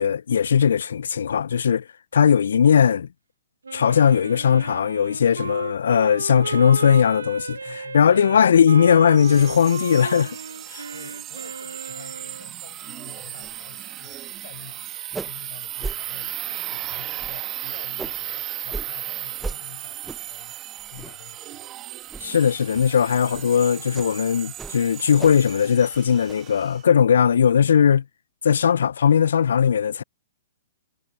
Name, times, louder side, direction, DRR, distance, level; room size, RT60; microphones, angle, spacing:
voice 1, 0.0-1.8 2.1-3.1 3.7-7.6 7.9-10.3 10.7-10.8 22.2-28.0 28.4-30.0, left 7 dB, 75° left, 0.3 m, -18 dB
Wind instrument woodwind instrument, 3.6-12.5, right 5 dB, 85° right, 0.9 m, -34 dB
voice 2, 5.4-5.7 7.6-8.5 10.1-10.4 10.9-14.9 15.2-21.8, left 13 dB, 55° left, 6.8 m, -48 dB
sound 1, 9.1-26.8, right 14 dB, 30° right, 1.5 m, -36 dB
sound 2, 13.4-13.6 13.9-14.4 14.6-14.7 15.0-15.5 15.8-16.0 16.5-16.8 17.2-18.2 18.7-18.9 19.4-19.6 20.0-20.4 20.8-21.3 21.6-21.8 22.1-22.3 22.7-22.9 23.3-23.5 23.9-24.1 24.5-25.5 25.8-26.3, right 3 dB, 5° right, 0.6 m, -37 dB
hypercardioid pair, 125°, 0 cm